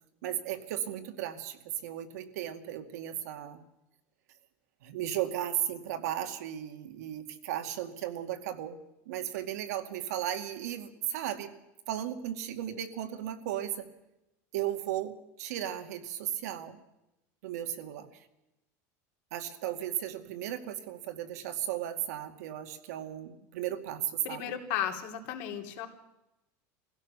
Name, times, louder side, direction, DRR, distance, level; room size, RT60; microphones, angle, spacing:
voice 1, 0.2-3.6 4.8-8.8 9.1-11.5 11.9-13.9 14.5-16.8 17.4-18.3 19.3-24.5, right 11 dB, 90° right, 6 dB, 2.3 m, -35 dB
voice 2, 24.2-25.9, left 10 dB, 65° left, 4 dB, 3.1 m, -34 dB
23.5 x 16.0 x 6.8 m, 0.93 s
supercardioid pair, 155°, 8 cm